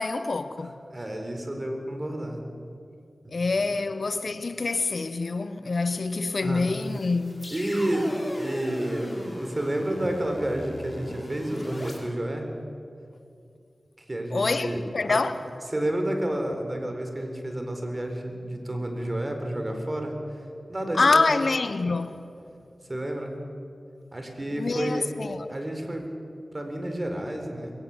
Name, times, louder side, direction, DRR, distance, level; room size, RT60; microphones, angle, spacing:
voice 1, 0.0-0.7 3.3-7.5 14.3-15.4 20.9-22.2 24.5-25.5, left 3 dB, 70° left, 0.9 m, -26 dB
voice 2, 0.6-2.4 3.2-3.8 6.4-6.7 7.5-12.5 14.1-14.8 15.1-15.2 15.7-20.2 20.7-21.3 22.9-23.3 24.1-25.1 25.5-26.1 26.5-27.7, right 1 dB, 35° right, 4.1 m, -30 dB
sound 1, 6.7-12.0, left 1 dB, 30° left, 5.1 m, -39 dB
21.5 x 18.0 x 7.3 m
cardioid pair, 40°, 0 cm